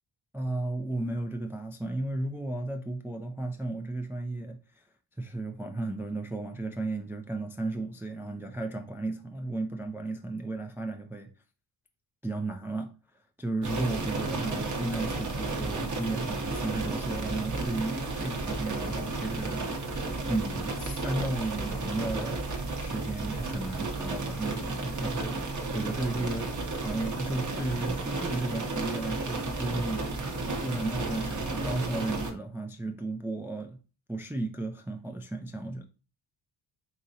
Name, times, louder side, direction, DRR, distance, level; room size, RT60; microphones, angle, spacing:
voice 1, 0.3-4.8 5.2-11.3 12.2-12.9 13.4-19.6 20.3-22.5 22.8-30.2 30.6-33.8 34.1-35.9, right 2 dB, 5° right, 0.3 m, -34 dB
sound 1, 13.6-32.3, right 3 dB, 35° right, 0.8 m, -33 dB
5.0 x 2.8 x 2.7 m
cardioid pair, 95°, 49 cm